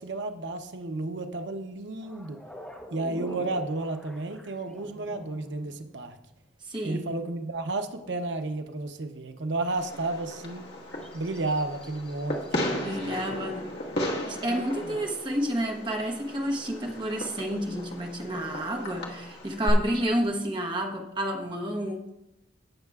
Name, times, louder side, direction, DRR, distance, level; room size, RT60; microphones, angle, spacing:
voice 1, 0.0-2.4 2.9-6.2 6.8-10.6 11.1-13.5 14.3-15.1 18.7-18.9, right 2 dB, 80° right, 6 dB, 0.8 m, -33 dB
sound 1, 2.0-6.1 10.2-10.5 10.9-13.3 13.6-14.1 16.6-18.5 18.8-18.9, left 1 dB, 5° left, 0.9 m, -47 dB
voice 2, 6.6-7.1 12.8-13.7 14.0-22.0, right 1 dB, 25° right, 2 dB, 1.0 m, -30 dB
Fireworks, 9.7-19.7, left 1 dB, 65° left, 1.6 m, -36 dB
17.0 x 6.5 x 2.4 m, 0.87 s
head